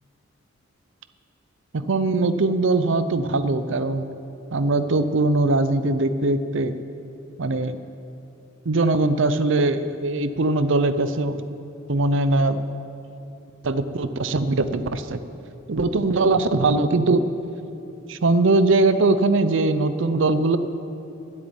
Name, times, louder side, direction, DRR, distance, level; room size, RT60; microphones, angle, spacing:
voice 1, 1.7-4.1 4.5-6.7 7.4-7.8 8.7-11.4 11.9-12.6 13.6-15.2 15.7-17.3 18.1-20.6, right 2 dB, 65° right, 11 dB, 0.6 m, -21 dB
13.0 x 8.1 x 9.2 m, 2.9 s
head